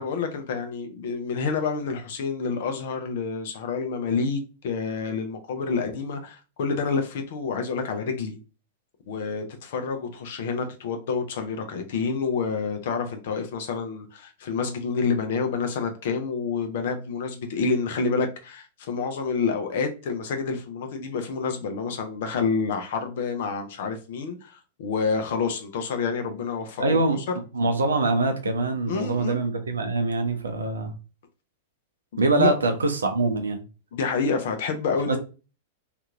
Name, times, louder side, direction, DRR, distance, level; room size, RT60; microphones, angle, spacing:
voice 1, 0.0-8.4 9.1-27.2 28.9-29.4 32.3-32.5 33.9-35.2, left 5 dB, 55° left, 0.7 m, -28 dB
voice 2, 26.8-27.2 27.5-30.9 32.2-33.6 35.1-35.2, right 3 dB, 75° right, 0.7 m, -24 dB
2.8 x 2.5 x 3.4 m
figure-of-eight pair, 95°, 0 cm